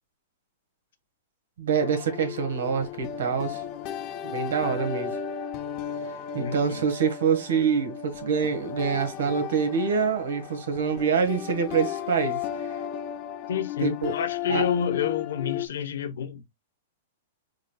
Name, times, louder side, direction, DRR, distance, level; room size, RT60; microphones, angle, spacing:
voice 1, 1.6-3.6 4.2-5.2 6.3-12.7 13.8-14.1 14.5-14.6, right 6 dB, 75° right, 1.5 m, -26 dB
sound 1, 1.8-15.7, left 9 dB, 25° left, 0.4 m, -34 dB
voice 2, 6.4-6.8 13.5-16.4, left 8 dB, 75° left, 1.0 m, -29 dB
4.9 x 4.0 x 2.3 m
supercardioid pair, 180°, 0 cm